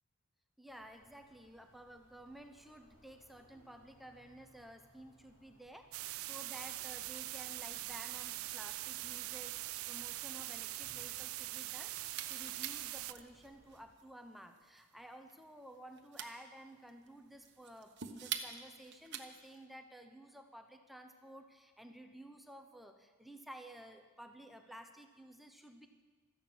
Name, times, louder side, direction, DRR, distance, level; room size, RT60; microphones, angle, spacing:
voice 1, 0.6-25.9, right 1 dB, ahead, 5 dB, 0.7 m, -54 dB
sound 1, 0.7-13.8, equal, 55° left, 4.4 m, -67 dB
sound 2, 5.9-13.1, right 18 dB, 75° right, 0.4 m, -42 dB
sound 3, 11.8-19.6, right 8 dB, 55° right, 1.2 m, -47 dB
16.5 x 13.5 x 6.2 m, 1.4 s
head